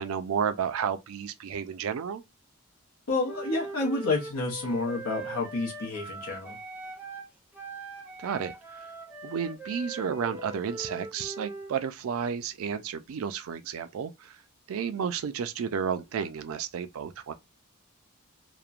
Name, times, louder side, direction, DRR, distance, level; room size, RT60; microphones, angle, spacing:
voice 1, 0.0-2.2 8.2-8.9 9.2-14.4 14.7-17.3, right 7 dB, 70° right, 0.4 m, -32 dB
voice 2, 3.1-6.6, left 3 dB, 85° left, 0.8 m, -29 dB
Wind instrument woodwind instrument, 3.2-7.3 7.5-11.7, right 2 dB, 10° right, 0.5 m, -41 dB
2.9 x 2.1 x 2.4 m
head